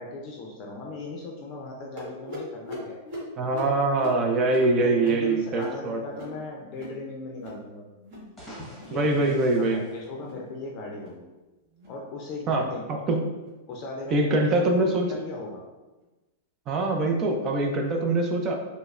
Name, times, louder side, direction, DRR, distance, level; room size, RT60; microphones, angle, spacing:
voice 1, 0.0-3.0 4.7-7.9 8.8-9.3 9.6-11.3 11.9-12.8 13.7-15.6, left 3 dB, 40° left, -1 dB, 0.5 m, -38 dB
sound 1, 2.0-7.0 7.3-7.7 7.9-8.3 8.6-9.0 9.4-9.7 10.1-10.5 10.9-11.2 11.7-12.0 12.5-12.8 13.4-13.6 14.3-14.4 15.1-15.2, left 1 dB, 45° right, 1.4 m, -42 dB
voice 2, 3.4-6.0 8.9-9.8 12.5-13.3 14.1-15.1 16.7-18.5, right 2 dB, 30° right, 3 dB, 0.5 m, -24 dB
sound 2, 8.2-10.8, equal, 10° left, 1.0 m, -47 dB
5.1 x 2.1 x 2.4 m, 1.1 s
supercardioid pair, 145°, 0 cm